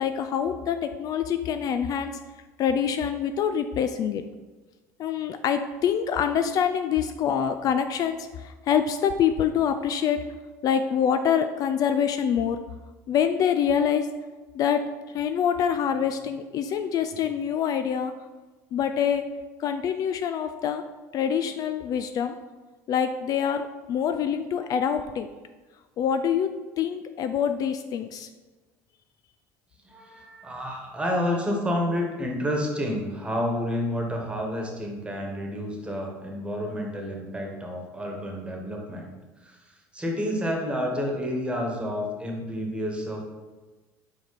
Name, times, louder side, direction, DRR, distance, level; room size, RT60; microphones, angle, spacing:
voice 1, 0.0-2.2 2.6-4.2 5.0-10.2 10.6-12.6 13.1-14.1 14.5-14.8 15.1-18.1 18.7-19.3 19.6-20.8 21.1-22.3 22.9-25.3 26.0-28.3, left 8 dB, 50° left, 8 dB, 0.4 m, -25 dB
voice 2, 29.8-39.1 39.4-43.2, equal, 15° right, 1 dB, 1.5 m, -30 dB
5.0 x 4.6 x 4.1 m, 1.2 s
hypercardioid pair, 80°, 8 cm